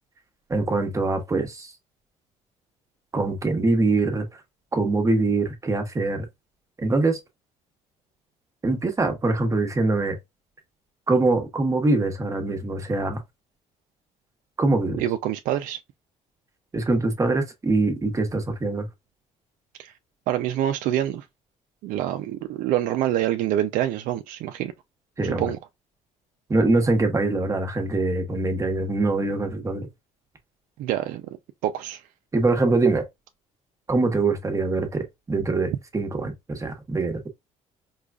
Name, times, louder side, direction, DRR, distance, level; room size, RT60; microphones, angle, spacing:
voice 1, 0.5-1.7 3.1-4.2 4.7-6.3 6.8-7.2 8.6-10.1 11.1-13.2 14.6-15.0 16.7-18.9 25.2-25.5 26.5-29.9 32.3-33.1 33.9-37.3, right 2 dB, 20° right, 1.1 m, -23 dB
voice 2, 15.0-15.8 19.8-19.9 20.3-21.3 21.8-24.7 25.2-25.6 30.8-31.4 31.6-32.0, right 12 dB, 75° right, 0.4 m, -26 dB
4.9 x 2.3 x 2.3 m
cardioid pair, 110°, 14 cm